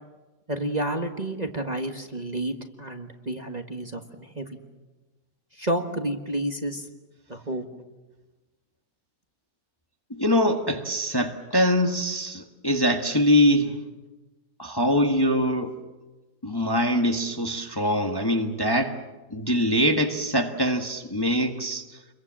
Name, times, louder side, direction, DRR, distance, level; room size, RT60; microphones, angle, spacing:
voice 1, 0.5-4.6 5.6-6.9 7.3-7.6, right 1 dB, 25° right, 4 dB, 1.5 m, -30 dB
voice 2, 10.1-13.7 14.6-15.7 16.4-19.0 19.3-21.9, equal, 15° left, 4 dB, 1.4 m, -23 dB
29.0 x 23.0 x 7.5 m, 1.2 s
omnidirectional pair, 1.9 m